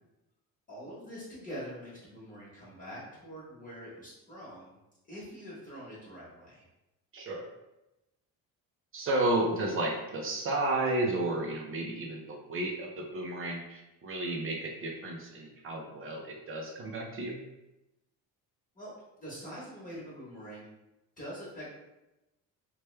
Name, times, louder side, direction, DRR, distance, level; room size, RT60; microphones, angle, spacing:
voice 1, 0.7-4.8 5.1-6.7 18.7-18.9 19.2-20.7 21.2-21.7, equal, 25° left, -8 dB, 1.1 m, -44 dB
voice 2, 7.1-7.4 8.9-17.4, right 2 dB, 40° right, 1 dB, 0.5 m, -32 dB
3.1 x 2.2 x 3.2 m, 0.96 s
cardioid pair, 135°, 34 cm